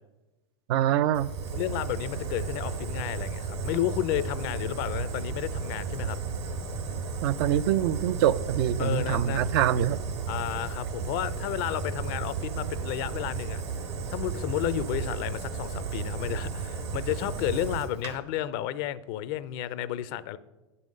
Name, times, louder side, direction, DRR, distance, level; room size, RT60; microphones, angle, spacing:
voice 1, 0.7-1.3 7.2-10.0, right 11 dB, 60° right, 0.4 m, -25 dB
Fire, 1.1-18.1, right 5 dB, 75° right, 1.7 m, -34 dB
voice 2, 1.5-6.2 8.8-9.5 10.3-13.6 14.1-20.4, left 12 dB, 55° left, 0.5 m, -32 dB
9.0 x 5.6 x 6.4 m
hypercardioid pair, 110°, 14 cm